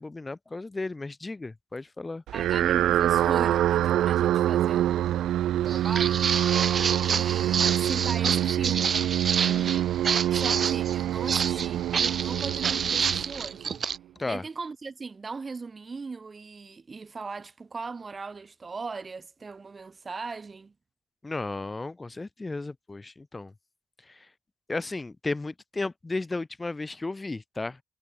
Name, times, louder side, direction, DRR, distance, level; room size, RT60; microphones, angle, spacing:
voice 1, 0.0-2.2 9.4-9.9 14.2-14.4 21.2-23.5 24.1-24.2 24.7-27.8, left 3 dB, 20° left, 3.0 m, -34 dB
voice 2, 2.3-6.3 6.6-6.7 7.1-9.0 10.3-13.7 14.3-20.7, right 4 dB, 30° right, 5.8 m, -38 dB
sound 1, 2.3-13.7, right 12 dB, 80° right, 0.5 m, -26 dB
Walk footsteps, 5.7-14.0, right 6 dB, 45° right, 1.3 m, -28 dB
cardioid pair, 90°, 0 cm